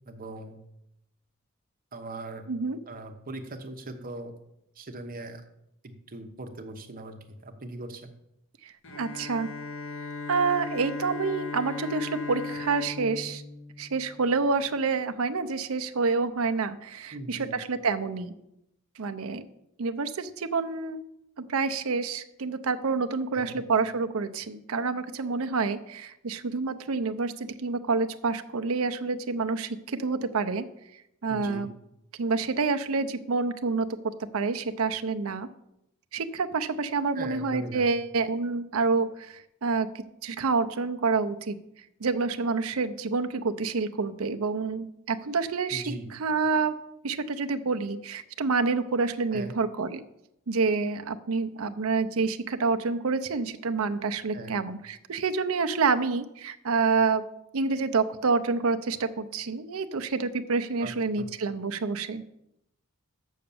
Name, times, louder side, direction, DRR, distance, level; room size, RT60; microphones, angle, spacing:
voice 1, 0.1-0.6 1.9-2.4 2.9-4.3 4.8-5.4 5.8-7.2 7.4-8.1 17.1-17.5 23.3-23.5 31.3-31.7 37.1-37.8 45.7-46.1 49.3-49.6 54.3-54.5 60.8-60.9 61.2-61.3, right 2 dB, 40° right, 6 dB, 1.0 m, -39 dB
voice 2, 2.5-2.8 8.6-9.5 10.3-13.4 13.8-18.3 19.0-19.4 19.8-21.0 21.4-30.7 31.2-31.7 32.2-33.9 34.3-35.5 36.1-39.9 40.2-41.6 42.0-45.8 46.1-46.7 47.0-50.0 50.5-57.2 57.5-62.2, right 4 dB, 70° right, 8 dB, 0.6 m, -28 dB
Bowed string instrument, 8.8-14.5, left 3 dB, 60° left, 1.4 m, -37 dB
6.8 x 6.4 x 7.0 m, 0.82 s
head